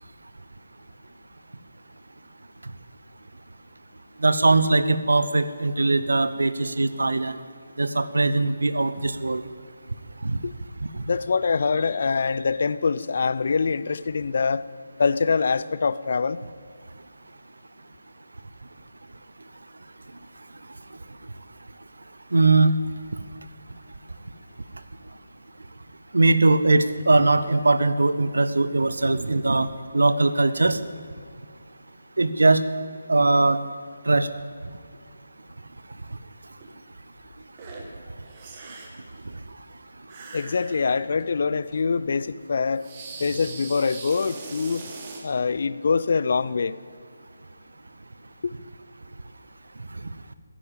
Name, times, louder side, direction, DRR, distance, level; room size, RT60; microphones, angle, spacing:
voice 1, 4.2-7.4 7.8-9.4 10.2-10.4 10.9-11.0 22.3-22.8 26.1-29.7 29.9-30.8 32.2-32.6 33.1-33.6 34.0-34.3, right 2 dB, 75° right, 13 dB, 1.0 m, -20 dB
voice 2, 11.1-14.7 15.0-16.4 40.3-42.9 43.2-44.8 45.2-46.8 48.4-48.5, left 5 dB, 55° left, 17 dB, 0.6 m, -24 dB
sound 1, 36.6-36.7 37.6-37.9 38.2-39.1 40.1-41.3 41.7-41.8 42.8-45.3, right 3 dB, 30° right, 2.2 m, -41 dB
15.5 x 10.0 x 9.1 m, 2.1 s
figure-of-eight pair, 150°, 0 cm